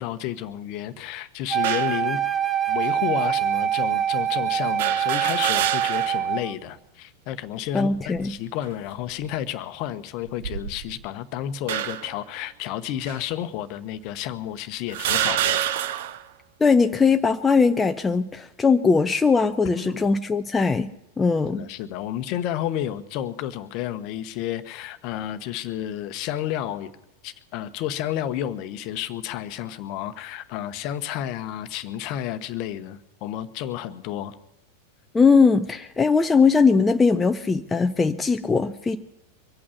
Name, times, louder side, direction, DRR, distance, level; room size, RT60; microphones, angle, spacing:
voice 1, 0.0-2.2 2.7-15.6 19.8-20.1 21.5-26.9 27.2-34.3, left 11 dB, 40° left, 12 dB, 1.0 m, -31 dB
Wind instrument woodwind instrument, 1.5-6.5, right 10 dB, 15° right, 1.0 m, -24 dB
sound 1, 1.6-2.0 2.9-3.0 4.8-6.3 6.7-6.8 7.9-8.4 9.0-9.3 10.3-11.1 11.7-12.2 13.1-13.2 14.1-14.2 14.9-16.2, right 11 dB, 55° right, 0.8 m, -27 dB
voice 2, 7.7-8.3 16.6-20.9 21.2-21.6 35.1-39.0, left 4 dB, 15° left, 7 dB, 0.6 m, -20 dB
24.0 x 8.7 x 7.0 m, 0.91 s
figure-of-eight pair, 90°, 0 cm